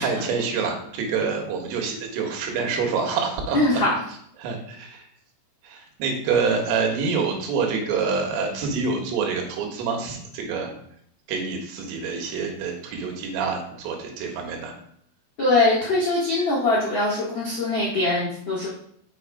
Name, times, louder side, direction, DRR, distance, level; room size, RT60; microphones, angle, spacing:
voice 1, 0.0-3.8 4.4-5.1 5.6-10.7 11.3-14.7, right 5 dB, 85° right, 1 dB, 4.1 m, -26 dB
voice 2, 3.5-3.9 15.4-18.7, left 2 dB, 70° left, -6 dB, 1.1 m, -22 dB
6.4 x 6.4 x 4.9 m, 0.68 s
omnidirectional pair, 5.7 m